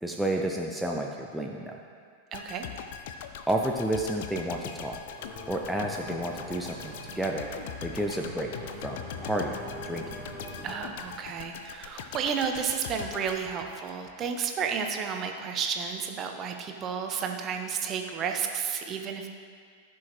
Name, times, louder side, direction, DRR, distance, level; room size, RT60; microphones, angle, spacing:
voice 1, 0.0-1.8 3.5-5.2 5.5-8.6 8.8-10.2, right 1 dB, 5° right, 0 dB, 0.6 m, -31 dB
sound 1, 2.3-14.3 14.7-14.8, left 8 dB, 55° left, 0.5 m, -41 dB
voice 2, 2.3-2.7 10.6-19.3, right 6 dB, 30° right, 4 dB, 0.9 m, -32 dB
Singing / Musical instrument, 5.2-10.9, left 2 dB, 20° left, 1.2 m, -46 dB
sound 2, 6.4-11.3, right 3 dB, 65° right, 1.1 m, -47 dB
14.5 x 6.3 x 3.0 m, 2.1 s
figure-of-eight pair, 90°, 0 cm